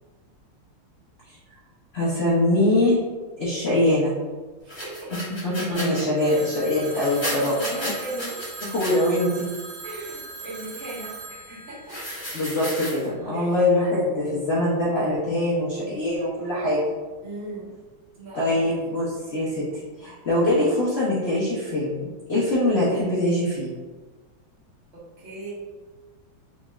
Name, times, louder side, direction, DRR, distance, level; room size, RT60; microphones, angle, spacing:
voice 1, 1.9-3.0 3.4-4.1 5.4-7.5 8.7-9.5 12.3-16.9 18.3-19.6 20.0-23.7, left 1 dB, 70° left, -8 dB, 0.6 m, -23 dB
voice 2, 4.6-5.1 6.2-6.5 7.3-8.4 9.8-12.0 13.3-13.5 17.2-17.7 18.1-18.6 24.9-25.5, right 2 dB, 40° right, -11 dB, 1.7 m, -37 dB
sound 1, 4.7-6.0 6.8-8.9 11.9-13.1, equal, 20° left, 0.7 m, -33 dB
Telephone, 6.2-13.0, right 4 dB, 80° right, 1.4 m, -40 dB
4.2 x 3.0 x 2.3 m, 1.4 s
omnidirectional pair, 2.3 m